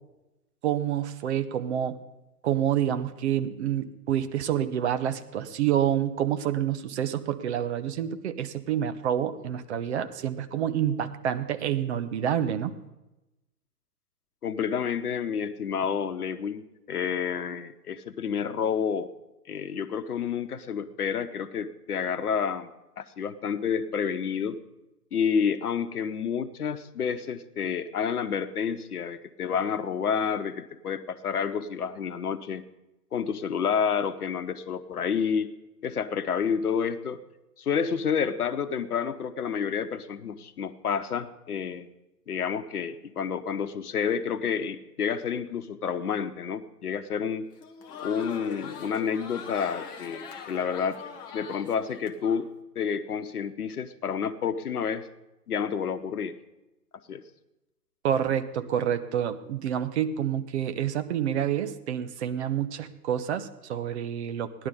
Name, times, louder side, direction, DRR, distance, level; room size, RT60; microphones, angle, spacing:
voice 1, 0.6-2.0 2.4-12.7 58.0-64.7, right 10 dB, 45° right, 11 dB, 1.0 m, -28 dB
voice 2, 14.4-19.1 19.5-22.7 23.0-24.6 25.1-32.6 33.1-35.5 35.8-37.2 37.6-41.9 42.3-47.4 48.0-51.0 51.3-52.5 52.7-55.1 55.5-56.4 57.1-57.2, left 7 dB, 65° left, 11 dB, 1.1 m, -29 dB
Crowd, 47.5-52.4, left 6 dB, 10° left, 0.5 m, -41 dB
16.5 x 11.0 x 5.4 m, 0.99 s
figure-of-eight pair, 115°, 48 cm